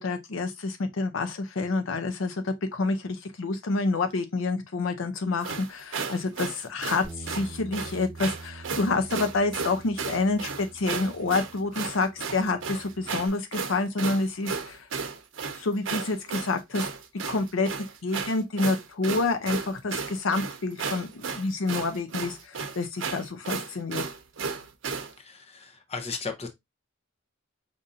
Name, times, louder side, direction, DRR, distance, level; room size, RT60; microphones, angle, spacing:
voice 1, 0.0-14.9 15.5-16.9 17.3-17.7 18.0-24.0, left 3 dB, 70° left, 0.5 m, -28 dB
sound 1, 5.4-25.1, right 5 dB, 65° right, 0.7 m, -34 dB
Bass guitar, 7.0-13.3, right 2 dB, ahead, 1.1 m, -46 dB
voice 2, 25.2-26.5, left 4 dB, 30° left, 0.7 m, -36 dB
5.2 x 2.5 x 2.6 m
head